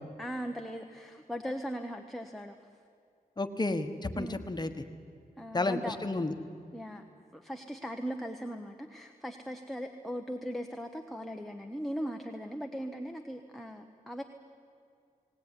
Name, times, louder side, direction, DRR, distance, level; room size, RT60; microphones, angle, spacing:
voice 1, 0.2-2.6 4.1-4.5 5.4-6.0 6.7-7.1 7.3-14.2, equal, ahead, 4 dB, 1.1 m, -39 dB
voice 2, 3.4-4.7 5.5-6.3, left 2 dB, 30° left, 7 dB, 1.4 m, -31 dB
19.5 x 18.5 x 9.9 m, 2.4 s
wide cardioid pair, 100°, 15 cm